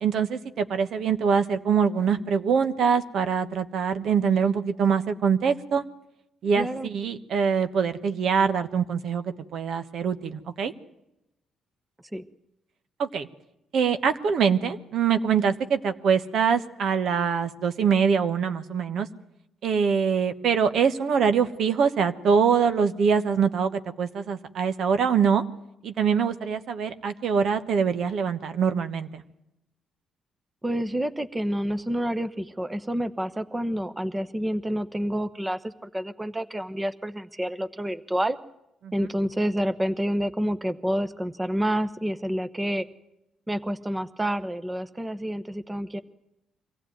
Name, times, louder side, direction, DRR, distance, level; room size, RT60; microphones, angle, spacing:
voice 1, 0.0-5.8 6.4-10.7 13.0-13.3 13.7-19.1 19.6-25.4 25.8-29.2 38.8-38.9, right 6 dB, 65° right, 9 dB, 1.3 m, -24 dB
voice 2, 6.5-6.9 12.1-12.2 30.6-38.4 38.9-42.8 43.5-46.0, equal, 15° right, 12 dB, 1.0 m, -28 dB
24.0 x 16.0 x 9.3 m, 0.88 s
cardioid pair, 90°, 0 cm